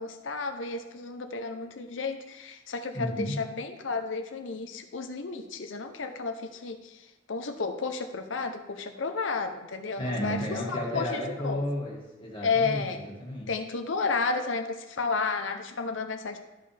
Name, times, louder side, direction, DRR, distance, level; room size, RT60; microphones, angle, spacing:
voice 1, 0.0-7.0 7.3-10.4 10.7-11.6 12.4-13.1 13.5-16.4, left 4 dB, 85° left, 6 dB, 0.7 m, -32 dB
voice 2, 2.9-3.4 10.0-13.5, equal, 25° left, -3 dB, 2.0 m, -33 dB
13.0 x 5.5 x 3.4 m, 1.0 s
head